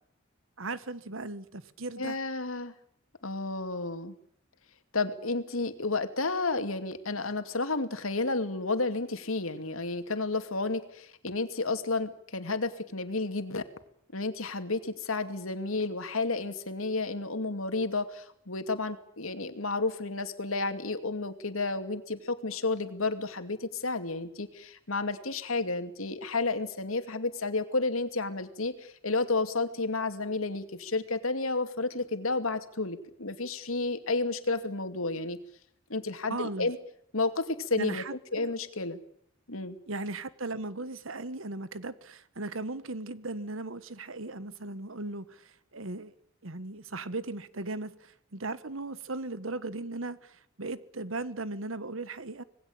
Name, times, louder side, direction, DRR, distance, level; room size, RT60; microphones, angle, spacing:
voice 1, 0.6-2.2 36.3-36.7 37.8-38.5 39.9-46.1 46.4-52.4, right 2 dB, 75° right, 1.4 m, -37 dB
voice 2, 2.0-2.7 3.2-4.2 4.9-13.6 14.1-35.4 35.9-36.8 37.1-38.0 38.3-39.0 39.5-39.8, left 3 dB, 85° left, 2.6 m, -31 dB
26.0 x 20.0 x 8.8 m
head